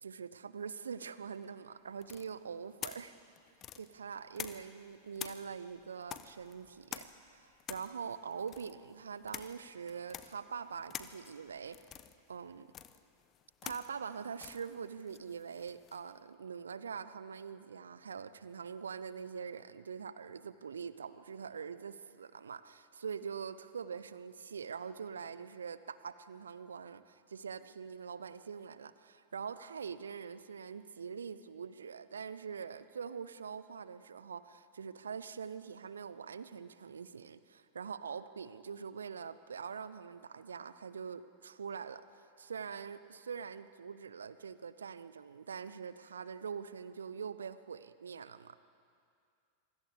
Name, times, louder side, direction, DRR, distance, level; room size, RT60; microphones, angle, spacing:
voice 1, 0.0-3.1 3.8-11.8 12.3-12.7 13.6-48.6, right 6 dB, 70° right, 14 dB, 0.8 m, -44 dB
sound 1, 2.0-4.8 5.1-16.1, left 10 dB, 30° left, 1.0 m, -48 dB
26.5 x 24.0 x 4.9 m, 2.4 s
figure-of-eight pair, 90°, 0 cm